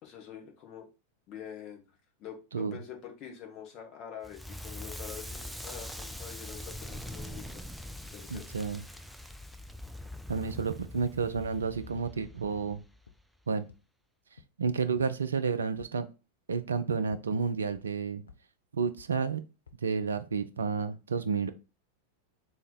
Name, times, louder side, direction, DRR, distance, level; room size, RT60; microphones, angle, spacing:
voice 1, 0.0-0.9 1.3-1.8 2.2-7.6 8.1-8.4 8.8-9.0, left 9 dB, 35° left, 2 dB, 1.3 m, -45 dB
Crackle, 4.2-13.2, left 1 dB, ahead, 0.4 m, -43 dB
voice 2, 8.3-8.8 10.3-12.8 13.5-13.6 14.6-16.1 16.5-18.2 18.7-19.4 19.8-21.5, right 5 dB, 70° right, 10 dB, 0.4 m, -31 dB
sound 1, 13.1-13.2 13.7-13.8 14.4-14.5 15.0-15.1 15.4-15.9 16.5-16.6 17.1-17.2 17.7-17.8 18.3-18.4 19.0-19.1 19.7-19.8 20.3-20.4, left 5 dB, 75° left, 0.5 m, -53 dB
4.0 x 2.8 x 4.3 m, 0.30 s
figure-of-eight pair, 90°, 0 cm